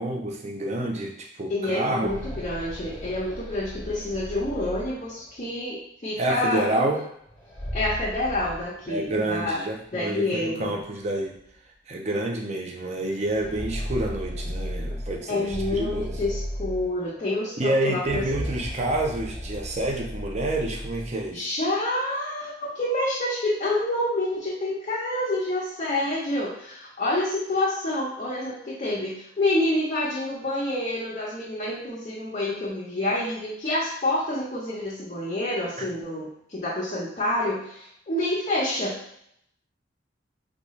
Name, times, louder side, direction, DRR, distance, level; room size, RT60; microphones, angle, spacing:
voice 1, 0.0-2.1 6.2-7.0 8.9-11.3 11.9-16.2 17.6-21.4, right 1 dB, 35° right, 0 dB, 0.5 m, -28 dB
voice 2, 1.5-6.9 7.7-9.6 9.9-10.7 15.3-18.2 21.3-39.0, left 1 dB, 35° left, -8 dB, 0.7 m, -28 dB
sound 1, 1.9-5.5 7.3-9.5 9.8-9.9 10.8-10.9 11.3-11.5 13.1-17.3 17.9-21.3, equal, 10° left, 1.1 m, -36 dB
3.8 x 2.3 x 3.1 m, 0.70 s
head